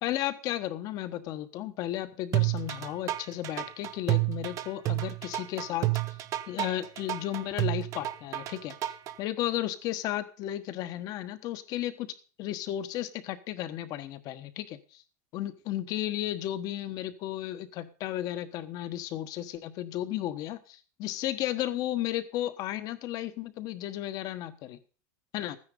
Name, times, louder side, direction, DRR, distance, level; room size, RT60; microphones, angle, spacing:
voice 1, 0.0-5.9 6.5-8.7 9.2-12.1 12.4-15.0 15.3-24.8 25.3-25.6, left 13 dB, 45° left, 11 dB, 1.2 m, -34 dB
sound 1, 2.3-9.1, right 16 dB, 35° right, 0.8 m, -30 dB
14.0 x 9.8 x 5.3 m, 0.38 s
supercardioid pair, 155°, 9 cm